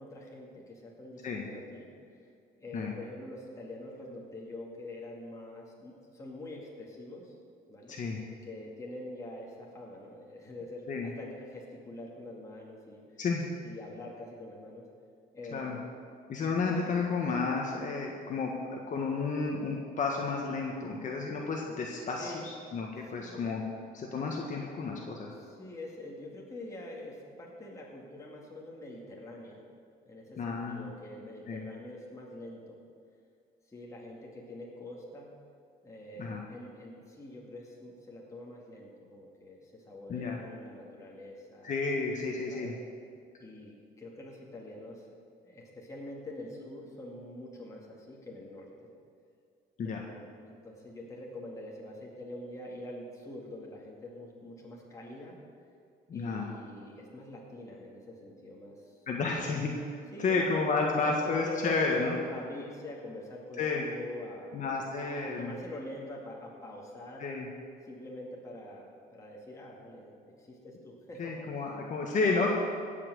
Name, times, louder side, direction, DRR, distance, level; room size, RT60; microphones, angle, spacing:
voice 1, 0.0-2.3 2.6-7.3 7.7-8.0 8.4-13.2 13.6-14.8 15.3-15.8 22.2-22.5 23.0-23.4 25.3-29.6 30.1-32.8 33.7-35.3 35.8-41.7 42.5-42.8 43.4-45.1 45.4-48.9 49.8-55.4 56.1-59.3 60.1-60.8 61.2-64.5 64.9-67.3 67.8-68.9 69.1-71.9, left 1 dB, 20° left, -3 dB, 2.3 m, -45 dB
voice 2, 7.9-8.2 10.9-11.1 13.2-13.4 15.5-15.8 16.3-23.6 23.9-25.3 30.4-30.9 31.5-31.6 36.2-36.4 40.1-40.4 41.6-42.7 49.8-50.0 56.1-56.5 59.1-59.7 60.2-62.1 63.6-63.9 64.5-65.5 67.2-67.5 71.2-72.5, left 4 dB, 50° left, -1 dB, 1.6 m, -31 dB
16.5 x 6.0 x 7.9 m, 2.3 s
cardioid pair, 110°, 17 cm